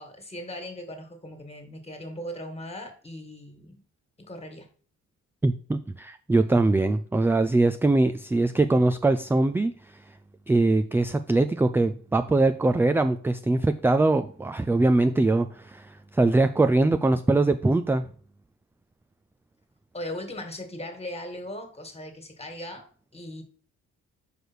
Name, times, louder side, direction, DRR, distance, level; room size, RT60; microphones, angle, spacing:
voice 1, 0.0-3.8 4.2-4.7 19.9-22.9 23.1-23.4, left 1 dB, 20° left, 6 dB, 1.9 m, -38 dB
voice 2, 5.4-9.7 10.5-18.1, right 2 dB, 10° right, 10 dB, 0.3 m, -22 dB
4.9 x 4.9 x 6.2 m, 0.44 s
cardioid pair, 90°, 30 cm